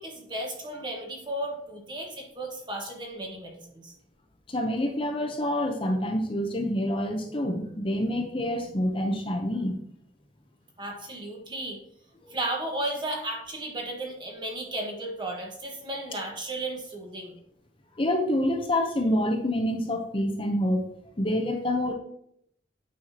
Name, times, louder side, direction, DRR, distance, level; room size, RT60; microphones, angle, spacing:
voice 1, 0.0-3.9 10.8-11.8 12.3-17.4, right 1 dB, 25° right, 0 dB, 1.4 m, -34 dB
voice 2, 4.5-9.8 12.2-12.3 18.0-20.8 21.2-21.9, left 1 dB, 30° left, 3 dB, 0.8 m, -27 dB
8.9 x 5.6 x 2.9 m, 0.71 s
head